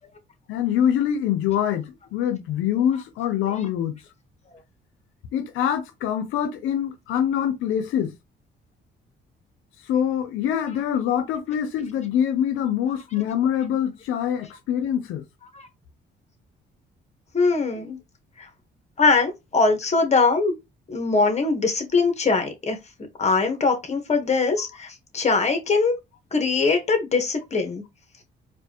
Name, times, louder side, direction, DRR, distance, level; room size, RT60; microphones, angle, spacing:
voice 1, 0.5-4.0 5.3-8.1 9.9-15.2, left 9 dB, 90° left, 0.6 m, -24 dB
voice 2, 17.3-18.0 18.4-18.5 19.0-20.5 20.9-22.8 23.2-25.9 26.3-27.8, left 4 dB, 35° left, 1.3 m, -22 dB
4.5 x 2.4 x 2.9 m
cardioid pair, 90°, 20 cm